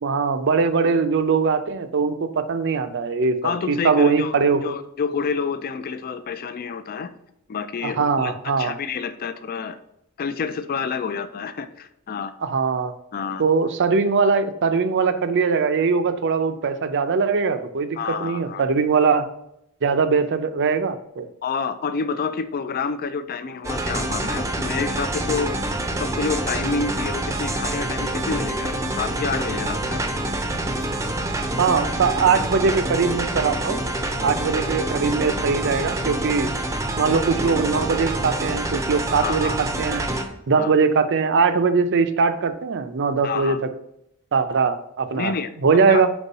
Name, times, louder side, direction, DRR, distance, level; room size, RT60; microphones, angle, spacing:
voice 1, 0.0-4.6 7.8-8.7 12.4-12.9 13.4-19.3 19.8-21.3 31.6-33.8 34.2-36.5 37.0-40.1 40.5-43.6 44.3-45.3 45.6-46.1, right 5 dB, 55° right, 10 dB, 0.5 m, -21 dB
voice 2, 3.4-4.4 4.6-7.1 7.5-9.8 10.2-12.3 13.1-13.4 18.0-18.6 21.4-30.0 39.2-39.5 40.6-40.7 43.2-43.6 45.1-45.5 45.9-46.0, left 5 dB, 45° left, 12 dB, 0.4 m, -28 dB
sound 1, 23.6-40.3, right 1 dB, 15° right, 0.5 m, -26 dB
5.3 x 4.6 x 4.1 m, 0.78 s
head